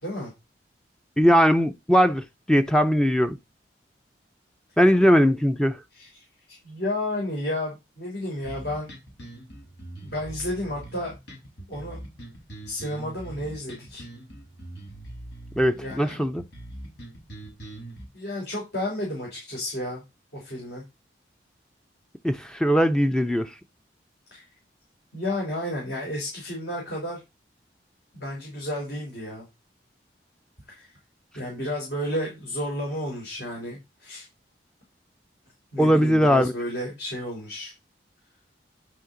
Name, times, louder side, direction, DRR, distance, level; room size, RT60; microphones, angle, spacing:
voice 1, 1.2-3.4 4.8-5.8 15.6-16.4 22.2-23.5 35.8-36.5, equal, 5° left, 0.4 m, -20 dB
voice 2, 5.9-8.9 10.0-11.1 11.7-12.0 12.7-14.0 15.8-16.2 18.1-20.0 20.3-20.8 24.3-24.4 25.1-27.2 28.1-29.5 30.7-30.9 31.3-34.3 35.7-37.7, left 1 dB, 65° left, 3.7 m, -32 dB
sound 1, 8.4-18.0, right 1 dB, 85° left, 4.6 m, -42 dB
11.0 x 4.9 x 3.9 m
head